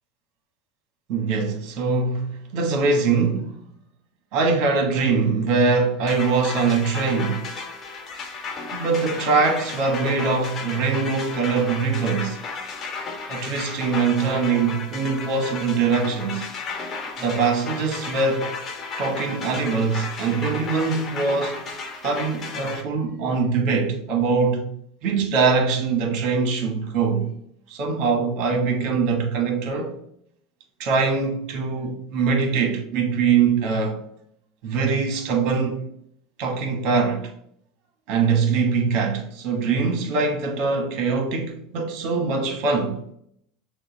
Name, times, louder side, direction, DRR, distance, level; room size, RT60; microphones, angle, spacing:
voice 1, 1.1-3.5 4.3-7.5 8.7-12.4 13.3-16.5 17.2-18.5 19.0-21.6 22.0-24.7 25.0-27.3 27.7-29.9 30.8-34.0 34.6-35.8 36.4-37.3 38.1-43.0, right 4 dB, 60° right, 1.2 m, -22 dB
sound 1, 6.1-22.8, left 4 dB, 40° left, 1.1 m, -34 dB
6.5 x 2.2 x 3.1 m
hypercardioid pair, 95°, 0 cm